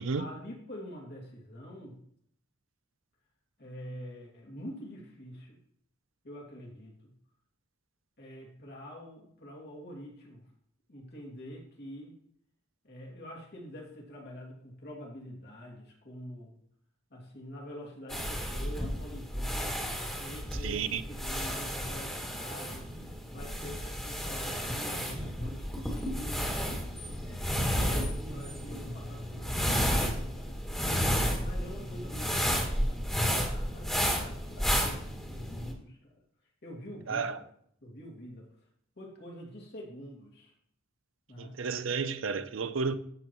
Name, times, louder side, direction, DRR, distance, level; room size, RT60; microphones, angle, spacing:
voice 1, 0.2-2.0 3.6-5.6 6.2-7.1 8.2-10.4 10.9-12.2 12.8-16.6 17.1-19.8 20.2-22.9 23.3-26.5 27.2-30.8 31.4-36.1 36.6-37.5 37.8-38.5 39.0-40.5 41.3-41.6, equal, 55° left, 2.7 m, -46 dB
sound 1, 18.1-35.7, equal, 5° left, 2.0 m, -32 dB
voice 2, 20.6-21.0 37.1-37.4 41.4-43.0, right 5 dB, 90° right, 0.6 m, -32 dB
13.0 x 6.3 x 3.1 m
head